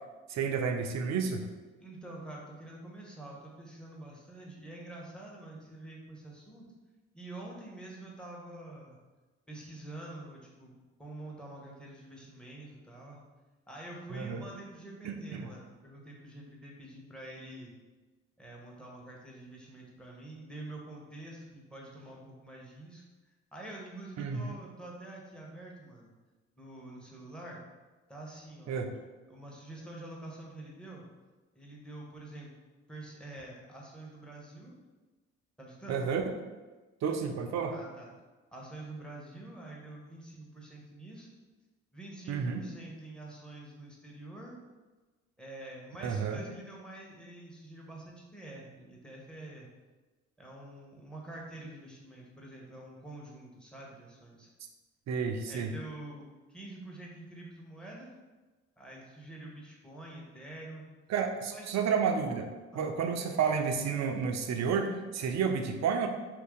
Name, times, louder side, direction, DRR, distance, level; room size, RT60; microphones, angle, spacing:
voice 1, 0.3-1.5 14.1-14.4 15.0-15.5 24.2-24.6 28.7-28.9 35.9-36.2 37.0-37.8 42.3-42.6 46.0-46.4 55.1-55.7 61.1-66.1, right 6 dB, 50° right, 5 dB, 0.5 m, -31 dB
voice 2, 1.8-6.6 7.1-9.0 9.5-13.2 13.7-17.7 18.4-23.0 23.5-26.1 26.6-27.6 28.1-28.9 29.3-31.0 31.5-32.5 32.9-34.7 35.6-36.0 37.7-38.1 38.5-41.3 41.9-44.6 45.4-49.7 50.4-54.5 55.5-56.2 56.5-58.1 58.8-60.8 61.5-61.8 62.7-62.9, right 2 dB, ahead, -3 dB, 1.1 m, -46 dB
2.9 x 2.6 x 3.6 m, 1.2 s
hypercardioid pair, 45°, 34 cm